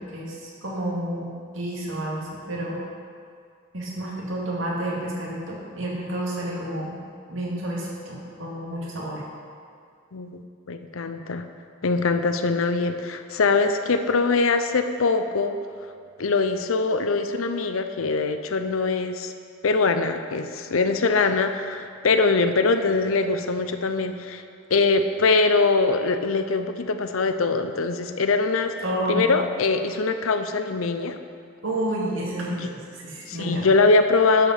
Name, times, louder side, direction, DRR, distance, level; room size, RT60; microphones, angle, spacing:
voice 1, 0.0-2.8 3.7-7.0 7.3-9.2 28.8-29.3 31.6-33.7, right 1 dB, 70° right, -4 dB, 2.1 m, -30 dB
voice 2, 10.1-11.5 11.8-15.6 16.2-19.3 19.6-24.4 24.7-28.8 29.1-31.2 33.3-34.5, left 3 dB, 85° left, 8 dB, 0.6 m, -22 dB
12.0 x 5.2 x 5.6 m, 2.2 s
head